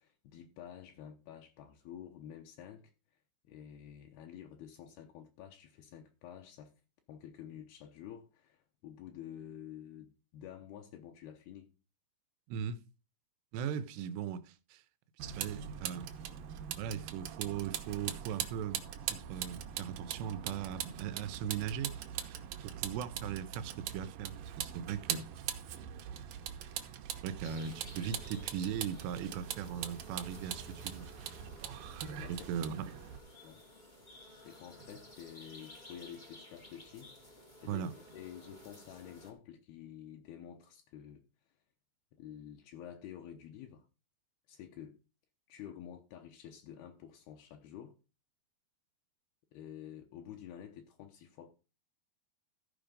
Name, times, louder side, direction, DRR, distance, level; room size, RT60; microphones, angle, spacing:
voice 1, 0.0-2.9 3.5-6.7 7.1-11.7 32.2-32.5 33.4-33.6 34.3-37.1 37.6-41.3 42.1-43.9 44.5-45.0 45.5-48.0 49.5-51.5, left 10 dB, 75° left, 2.8 m, -50 dB
voice 2, 12.5-12.8 13.5-14.8 15.2-16.1 16.8-18.8 19.1-21.9 22.6-25.3 27.2-31.1 32.3-33.0 37.6-37.9, right 8 dB, 90° right, 2.9 m, -39 dB
Vehicle, 15.2-33.2, right 10 dB, 70° right, 2.3 m, -42 dB
sound 1, 27.4-39.3, left 1 dB, 50° left, 0.5 m, -55 dB
14.0 x 5.0 x 5.2 m
omnidirectional pair, 4.8 m